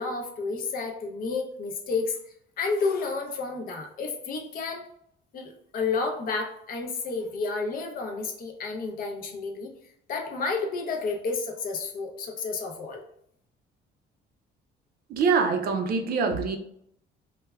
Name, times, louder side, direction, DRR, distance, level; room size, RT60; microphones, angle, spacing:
voice 1, 0.0-2.2 2.6-4.9 5.3-9.7 10.1-13.0, left 4 dB, 50° left, 2 dB, 0.5 m, -31 dB
voice 2, 15.1-16.6, right 5 dB, 55° right, 5 dB, 0.4 m, -24 dB
3.2 x 2.1 x 2.2 m, 0.71 s
cardioid pair, 145°, 19 cm